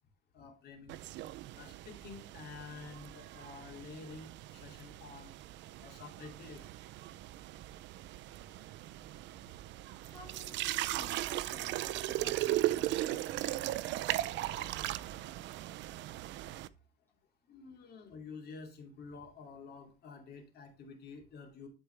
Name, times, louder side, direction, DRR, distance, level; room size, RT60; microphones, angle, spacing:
voice 1, 0.3-1.0 1.5-5.3 5.8-6.7 17.5-21.7, left 4 dB, 50° left, 2 dB, 2.6 m, -49 dB
sound 1, 0.9-16.7, right 15 dB, 60° right, 0.5 m, -38 dB
voice 2, 10.0-13.6, left 1 dB, 10° left, -1 dB, 1.8 m, -54 dB
12.0 x 4.6 x 3.4 m, 0.33 s
cardioid pair, 155°, 21 cm